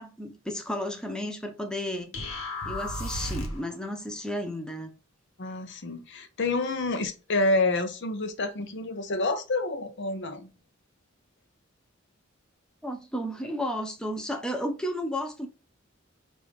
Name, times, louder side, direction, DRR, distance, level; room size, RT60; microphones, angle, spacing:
voice 1, 0.0-2.1 2.6-4.9 12.8-15.5, equal, 5° left, 0.6 m, -33 dB
sound 1, 2.1-3.7, left 1 dB, 80° left, 1.3 m, -33 dB
voice 2, 5.4-10.5, left 2 dB, 60° left, 0.8 m, -28 dB
5.3 x 2.6 x 3.1 m
head